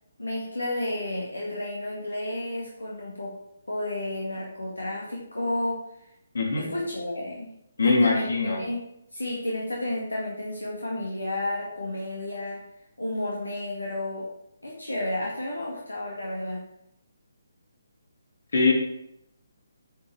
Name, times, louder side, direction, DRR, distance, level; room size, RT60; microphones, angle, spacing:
voice 1, 0.2-3.3 3.6-5.8 6.6-7.5 7.8-8.8 9.1-12.6 13.0-14.3 14.6-16.6, left 1 dB, 85° left, -3 dB, 2.0 m, -31 dB
voice 2, 6.3-6.7 7.8-8.6 18.5-18.7, left 3 dB, 60° left, -1 dB, 3.2 m, -22 dB
9.6 x 6.9 x 4.6 m, 0.80 s
figure-of-eight pair, 140°, 0 cm